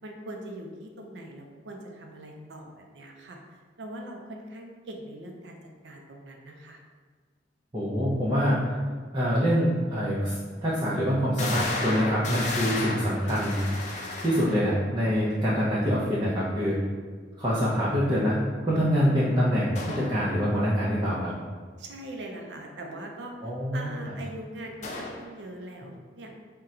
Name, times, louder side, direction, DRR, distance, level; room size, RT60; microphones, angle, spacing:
voice 1, 0.0-3.4 3.8-5.6 5.8-6.8 21.8-23.3 23.7-26.3, right 1 dB, 85° right, 2 dB, 0.5 m, -41 dB
voice 2, 7.7-8.6 9.1-13.6 14.2-16.8 17.4-18.4 18.6-21.3 23.4-24.1, equal, 25° right, -8 dB, 0.6 m, -25 dB
sound 1, 9.8-9.9 10.5-10.6 11.4-14.8 19.7-20.2 24.8-25.3, left 2 dB, 45° left, 0.5 m, -33 dB
3.8 x 2.2 x 4.2 m, 1.5 s
head